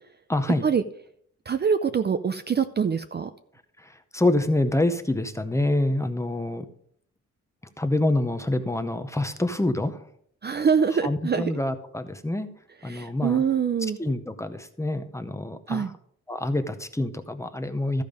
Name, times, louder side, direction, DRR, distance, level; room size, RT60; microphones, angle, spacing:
voice 1, 0.3-0.7 4.1-6.7 7.8-10.0 11.0-12.5 12.8-13.4 14.0-15.8 16.3-18.0, left 1 dB, 10° left, 9 dB, 0.7 m, -26 dB
voice 2, 1.5-3.3 10.4-11.5 12.9-14.0 15.7-15.9, right 6 dB, 35° right, 10 dB, 0.4 m, -24 dB
14.0 x 5.2 x 5.1 m, 0.65 s
wide cardioid pair, 145°, 31 cm